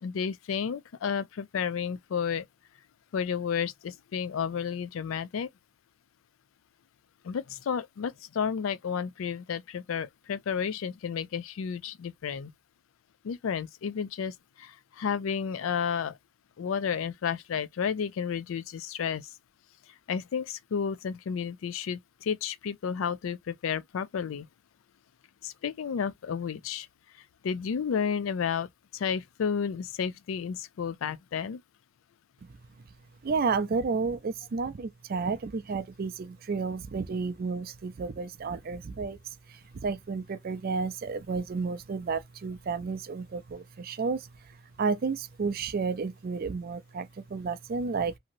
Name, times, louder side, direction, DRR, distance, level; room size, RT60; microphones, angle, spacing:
voice 1, 0.0-2.5 3.1-5.5 7.2-12.5 13.2-16.2 16.6-19.3 20.1-24.5 25.4-26.9 27.4-31.6, left 7 dB, 90° left, 0.4 m, -32 dB
voice 2, 33.2-48.2, right 4 dB, 50° right, 0.4 m, -32 dB
2.9 x 2.7 x 2.5 m
head